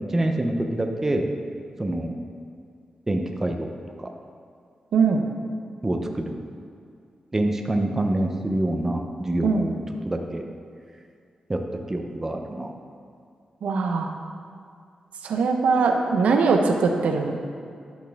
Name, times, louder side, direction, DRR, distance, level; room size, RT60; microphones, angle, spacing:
voice 1, 0.1-1.2 1.8-2.1 3.1-3.7 4.0-4.1 5.8-6.3 7.3-9.8 10.1-10.4 11.5-11.6 11.9-12.7, right 1 dB, 15° right, 3 dB, 0.5 m, -26 dB
voice 2, 4.9-5.2 9.4-9.7 13.6-14.1 15.2-17.5, right 4 dB, 90° right, 4 dB, 0.6 m, -21 dB
10.0 x 4.2 x 3.4 m, 2.3 s
wide cardioid pair, 135°, 2 cm